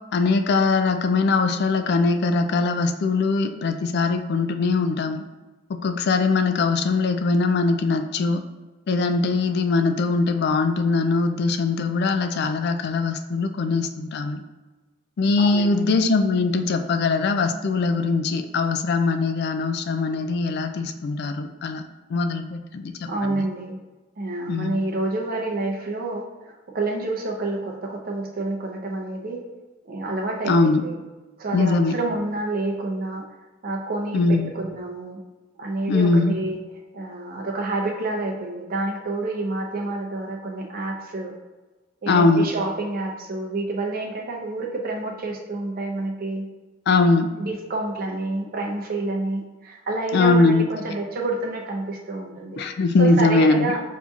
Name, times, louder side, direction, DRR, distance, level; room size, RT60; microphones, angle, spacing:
voice 1, 0.1-5.2 5.7-8.4 8.9-14.4 15.2-21.8 22.1-23.5 24.5-24.8 30.5-30.8 31.5-32.0 34.1-34.5 35.9-36.3 42.1-42.5 46.9-47.3 50.1-50.7 52.6-53.7, left 3 dB, 60° left, 7 dB, 0.3 m, -21 dB
voice 2, 15.4-15.9 23.1-23.8 24.2-29.4 29.8-31.0 31.4-33.2 33.6-35.2 35.6-36.6 36.9-41.3 42.0-46.5 47.4-52.6 53.0-53.8, right 2 dB, 50° right, 1 dB, 0.6 m, -28 dB
5.7 x 2.7 x 2.4 m, 1.2 s
head